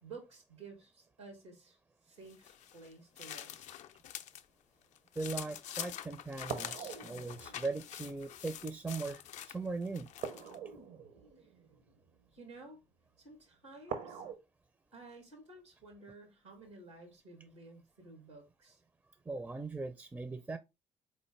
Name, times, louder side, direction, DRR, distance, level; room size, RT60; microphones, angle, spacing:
voice 1, 0.0-3.6 11.4-11.5 12.3-12.8 13.2-14.2 14.9-18.8, right 3 dB, 90° right, 1.3 m, -53 dB
sound 1, 2.3-4.4 4.8-10.6, left 11 dB, 55° left, 0.4 m, -46 dB
voice 2, 5.2-9.2 9.5-10.1 19.3-20.6, right 3 dB, 15° right, 0.4 m, -39 dB
sound 2, 6.4-8.6 10.2-12.4 13.9-14.3, right 7 dB, 60° right, 0.8 m, -44 dB
3.9 x 3.2 x 3.5 m
figure-of-eight pair, 45°, 15 cm